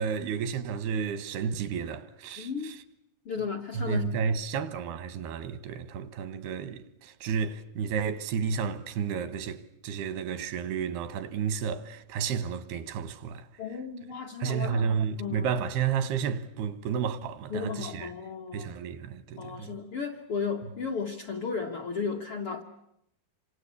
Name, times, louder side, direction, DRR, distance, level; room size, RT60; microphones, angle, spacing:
voice 1, 0.0-2.7 3.7-13.5 14.4-18.1 18.5-19.7, right 6 dB, 85° right, 3.3 m, -31 dB
voice 2, 2.4-2.8 3.2-4.3 13.6-15.5 17.5-18.7 19.4-22.6, left 5 dB, 60° left, 1.5 m, -34 dB
27.5 x 25.5 x 8.4 m
omnidirectional pair, 4.5 m